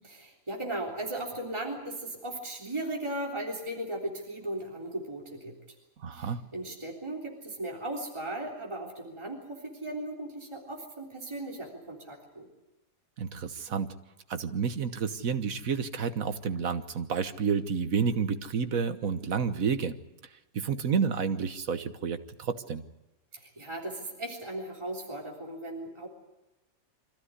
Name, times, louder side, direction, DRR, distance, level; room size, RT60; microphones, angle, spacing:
voice 1, 0.2-5.6 6.2-12.5 23.3-26.1, right 1 dB, 20° right, -1 dB, 3.6 m, -37 dB
voice 2, 6.0-6.4 13.2-13.9 14.3-20.0 20.5-22.8, right 6 dB, 70° right, 10 dB, 1.6 m, -30 dB
25.5 x 15.5 x 9.7 m, 1.0 s
omnidirectional pair, 1.5 m